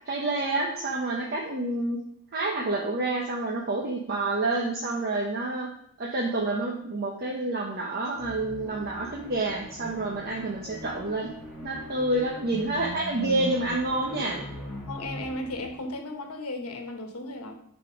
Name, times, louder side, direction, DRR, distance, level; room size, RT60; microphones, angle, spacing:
voice 1, 0.1-2.0 2.3-5.7 6.0-11.3 11.6-14.4, right 2 dB, 45° right, -2 dB, 0.9 m, -28 dB
sound 1, 8.1-15.8, equal, 5° right, 2.1 m, -40 dB
voice 2, 14.9-17.5, left 1 dB, 90° left, 4 dB, 1.2 m, -35 dB
8.1 x 4.1 x 5.1 m, 0.69 s
head